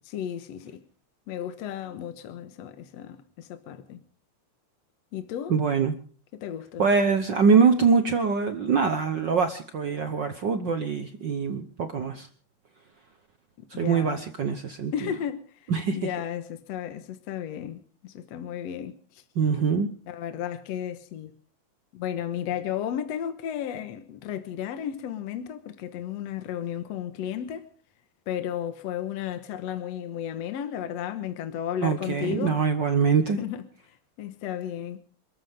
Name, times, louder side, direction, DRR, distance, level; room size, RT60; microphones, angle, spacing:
voice 1, 0.0-0.8 1.3-4.0 5.1-5.6 6.3-6.9 13.7-14.2 14.9-19.2 20.1-21.3 21.9-27.7 28.3-32.6 33.4-35.0, left 9 dB, 65° left, 2.2 m, -34 dB
voice 2, 5.5-5.9 6.8-12.3 13.7-14.9 15.7-16.0 19.4-19.9 31.8-33.4, right 5 dB, 60° right, 1.2 m, -23 dB
28.0 x 14.0 x 3.6 m
omnidirectional pair, 3.3 m